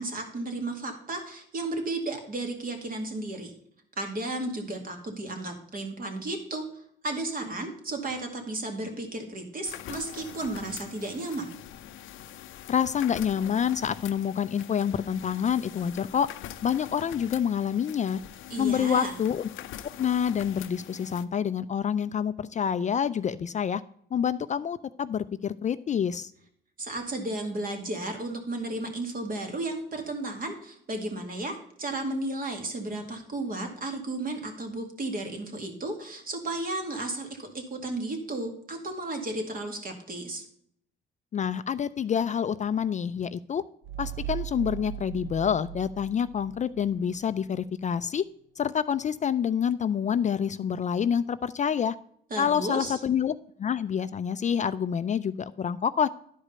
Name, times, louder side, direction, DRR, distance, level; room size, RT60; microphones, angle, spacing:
voice 1, 0.0-3.5 4.0-11.5 18.5-19.1 26.8-40.4 52.3-53.0, right 2 dB, 45° right, 4 dB, 2.2 m, -34 dB
sound 1, 9.6-21.2, left 11 dB, 85° left, 0.6 m, -44 dB
voice 2, 12.7-16.3 16.6-18.2 18.6-19.5 20.0-23.8 24.1-26.3 41.3-43.6 44.0-48.2 48.6-52.0 52.4-56.1, left 8 dB, 35° left, 14 dB, 0.4 m, -27 dB
sound 2, 43.8-47.2, right 12 dB, 75° right, 0.6 m, -38 dB
11.0 x 5.0 x 5.5 m, 0.67 s
cardioid pair, 90°, 20 cm